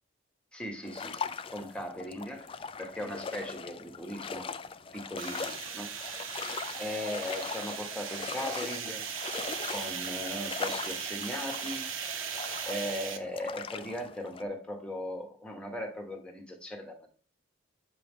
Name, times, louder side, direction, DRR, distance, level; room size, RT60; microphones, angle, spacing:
voice 1, 0.5-1.2 1.5-2.5 2.8-4.5 4.9-5.9 6.8-9.1 9.7-11.9 12.7-17.1, left 1 dB, 5° left, 3 dB, 1.2 m, -38 dB
sound 1, 0.8-14.4, left 5 dB, 25° left, 0.3 m, -40 dB
sound 2, 5.2-13.2, right 7 dB, 75° right, 0.9 m, -38 dB
7.6 x 4.7 x 3.6 m, 0.39 s
head